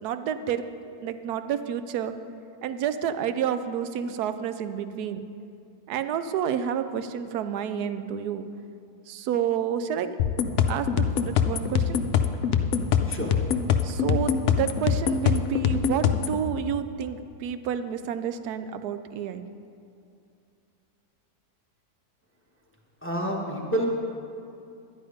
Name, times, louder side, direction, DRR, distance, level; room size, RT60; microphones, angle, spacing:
voice 1, 0.0-0.6 0.9-2.1 2.6-5.2 5.9-8.5 9.1-10.2 10.7-12.1 13.8-19.4, right 8 dB, 85° right, 10 dB, 1.1 m, -29 dB
sound 1, 10.2-16.4, left 7 dB, 65° left, 0.8 m, -24 dB
voice 2, 23.0-23.9, right 1 dB, 10° left, -2 dB, 1.2 m, -28 dB
11.5 x 10.0 x 5.0 m, 2.5 s
omnidirectional pair, 1.6 m